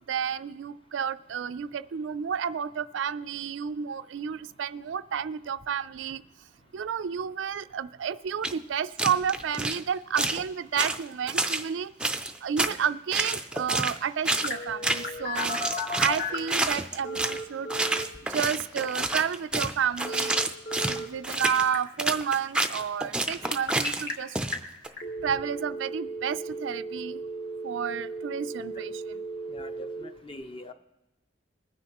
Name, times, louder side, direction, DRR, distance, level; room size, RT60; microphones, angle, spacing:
voice 1, 0.1-6.2 6.7-11.9 12.4-15.6 16.0-17.7 18.3-20.5 20.9-24.6 25.2-27.2 27.6-29.2, right 7 dB, 85° right, 13 dB, 0.4 m, -31 dB
sound 1, 8.4-8.5 9.0-9.8 10.1-10.4 10.8-11.7 12.0-12.8 13.1-14.0 14.2-14.6 14.8-15.1 15.3-17.4 17.7-24.9, right 2 dB, 5° right, 0.5 m, -28 dB
Telephone, 14.4-16.5 17.0-18.1 20.0-21.1 21.3-21.8 23.4-24.1 24.5-24.6 25.0-30.0, equal, 55° left, 2.1 m, -35 dB
voice 2, 29.5-30.7, left 2 dB, 30° left, 8 dB, 0.7 m, -43 dB
21.5 x 9.7 x 3.0 m, 0.98 s
head